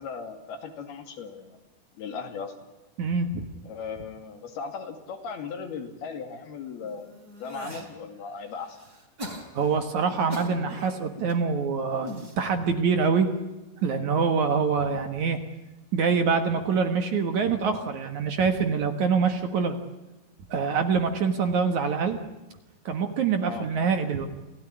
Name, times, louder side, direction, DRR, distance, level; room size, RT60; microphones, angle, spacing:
voice 1, 0.0-1.6 2.0-2.5 3.6-7.1 7.4-8.8 23.5-23.7, left 5 dB, 70° left, 6 dB, 4.3 m, -37 dB
voice 2, 3.0-3.4 9.5-12.1 12.4-13.3 13.8-15.4 15.9-19.8 20.5-22.2 22.9-24.3, right 5 dB, 55° right, 7 dB, 2.4 m, -25 dB
sound 1, 6.8-7.9 8.4-11.3 11.9-12.4 13.2-13.6, equal, 25° right, 3.8 m, -41 dB
28.5 x 16.5 x 9.9 m, 1.1 s
omnidirectional pair, 4.6 m